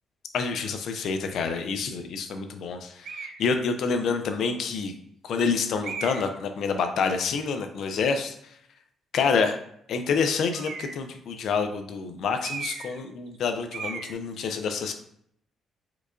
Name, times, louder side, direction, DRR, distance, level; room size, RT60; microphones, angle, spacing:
voice 1, 0.3-4.9 5.2-8.6 9.1-9.6 9.9-14.9, left 5 dB, 70° left, 6 dB, 0.4 m, -27 dB
sound 1, 3.0-3.4 4.2-4.3 5.8-6.4 10.5-11.1 12.4-13.0 13.3-13.4 13.7-14.1, right 5 dB, 60° right, 0.4 m, -36 dB
4.5 x 2.3 x 2.4 m, 0.69 s
cardioid pair, 90°, 0 cm